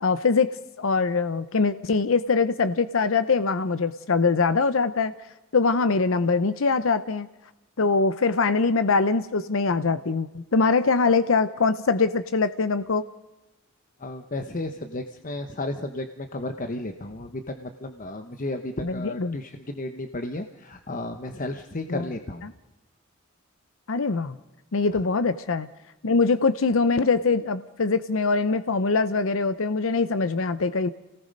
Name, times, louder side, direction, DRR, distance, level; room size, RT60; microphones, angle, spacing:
voice 1, 0.0-5.1 5.5-7.3 7.8-13.0 18.8-19.4 21.9-22.1 22.4-22.5 23.9-24.4 24.7-25.7 26.0-30.9, left 4 dB, 65° left, 12 dB, 0.7 m, -23 dB
voice 2, 14.0-22.5 24.9-25.0, left 2 dB, 40° left, 7 dB, 1.0 m, -33 dB
29.0 x 18.5 x 5.3 m, 1.0 s
head